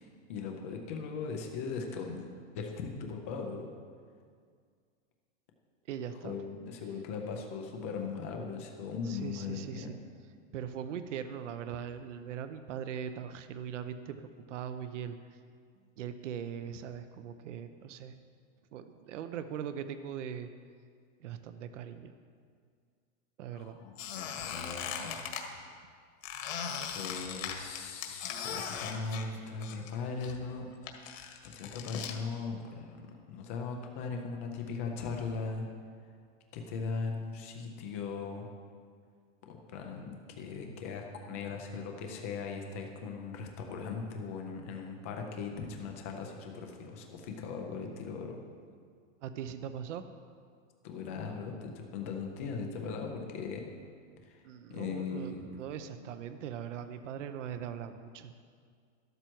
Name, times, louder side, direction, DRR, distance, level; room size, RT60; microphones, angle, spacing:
voice 1, 0.0-2.3 2.5-3.7 6.2-9.9 23.5-25.7 26.9-30.7 31.0-31.2 31.4-35.7 36.5-38.5 39.5-48.4 50.8-53.7 54.3-54.4 54.7-55.4, left 5 dB, 10° left, 2 dB, 0.3 m, -39 dB
voice 2, 5.9-6.4 9.0-10.0 10.5-15.2 16.0-18.1 18.7-20.5 21.2-22.1 23.4-23.8 25.5-25.8 49.2-50.0 54.4-58.3, right 8 dB, 65° right, 10 dB, 0.9 m, -40 dB
Squeak, 24.0-25.4 26.2-29.9 30.2-32.2, left 7 dB, 75° left, 1.9 m, -39 dB
13.0 x 12.0 x 4.5 m, 2.1 s
supercardioid pair, 165°, 39 cm